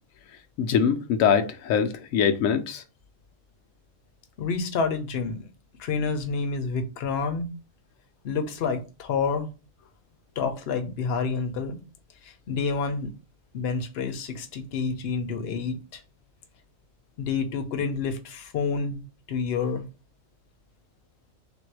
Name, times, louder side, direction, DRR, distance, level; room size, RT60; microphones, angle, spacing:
voice 1, 0.6-2.8, left 7 dB, 90° left, 1.0 m, -23 dB
voice 2, 4.4-5.5 5.8-7.5 8.2-9.5 10.4-11.8 12.2-13.1 13.5-16.0 17.2-19.0 19.3-19.8, left 5 dB, 55° left, 0.9 m, -28 dB
3.6 x 2.6 x 4.6 m
omnidirectional pair, 1.4 m